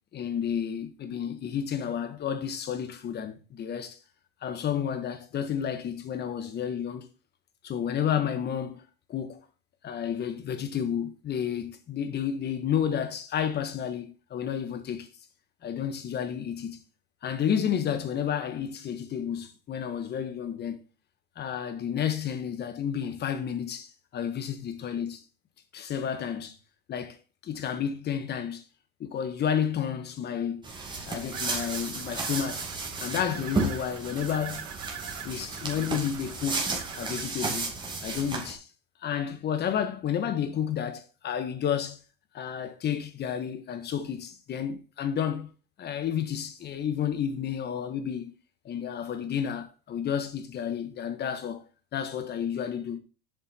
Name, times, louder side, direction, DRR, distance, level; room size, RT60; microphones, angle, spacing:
voice 1, 0.1-4.0 4.4-7.1 7.6-8.8 9.1-9.4 9.8-15.1 15.6-16.8 17.2-20.8 21.4-25.2 25.7-26.6 26.9-27.2 27.4-28.6 29.0-30.7 31.0-32.6 33.0-34.7 35.2-36.7 36.9-37.7 38.0-38.6 39.0-42.0 42.3-45.5 45.8-48.3 48.6-51.6 51.9-53.0, left 8 dB, 35° left, 1.4 m, -31 dB
sound 1, 30.6-38.5, right 3 dB, 15° right, 2.2 m, -33 dB
sound 2, 31.3-37.2, right 9 dB, 75° right, 2.5 m, -43 dB
7.8 x 5.5 x 4.4 m
supercardioid pair, 120°, 30 cm